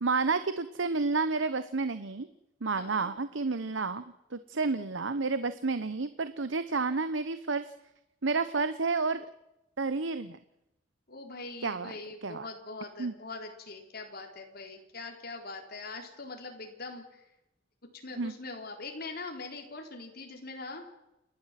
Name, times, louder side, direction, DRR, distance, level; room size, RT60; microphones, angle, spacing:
voice 1, 0.0-2.3 2.6-7.7 8.2-9.3 9.8-10.4 11.6-11.9 12.2-12.5 13.0-13.1 18.1-18.3, right 4 dB, 85° right, 12 dB, 0.9 m, -30 dB
voice 2, 2.7-3.1 11.1-17.2 18.0-20.8, left 3 dB, 55° left, 4 dB, 4.0 m, -42 dB
29.5 x 12.0 x 7.6 m, 0.88 s
head